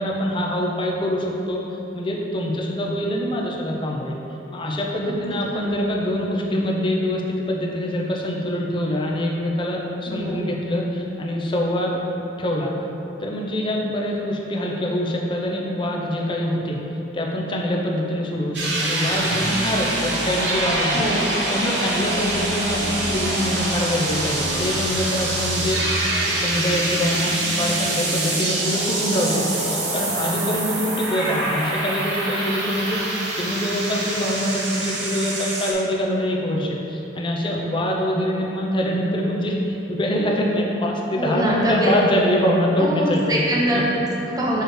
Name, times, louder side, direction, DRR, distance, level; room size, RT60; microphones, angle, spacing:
voice 1, 0.0-1.6 1.9-4.2 4.5-12.0 12.4-12.7 13.2-16.8 17.1-21.1 21.5-25.8 26.3-29.4 29.7-43.4 43.7-43.8, equal, 25° left, -2 dB, 0.7 m, -24 dB
voice 2, 5.1-5.7 10.1-10.4 20.9-21.4 29.6-29.8 41.2-41.9 42.8-44.6, right 1 dB, 20° right, -5 dB, 0.9 m, -24 dB
sound 1, 18.5-35.7, right 1 dB, 65° right, 1.0 m, -25 dB
6.5 x 3.3 x 4.7 m, 2.9 s
head